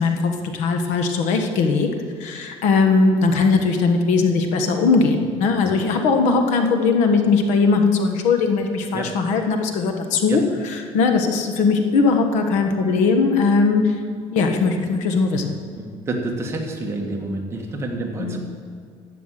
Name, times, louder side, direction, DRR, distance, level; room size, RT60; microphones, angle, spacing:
voice 1, 0.0-1.9 2.2-13.9 14.3-15.5 18.2-18.4, left 4 dB, 80° left, 5 dB, 1.5 m, -19 dB
voice 2, 15.8-18.4, right 2 dB, 20° right, 1 dB, 1.6 m, -28 dB
12.0 x 8.4 x 7.5 m, 2.2 s
cardioid pair, 160°, 12 cm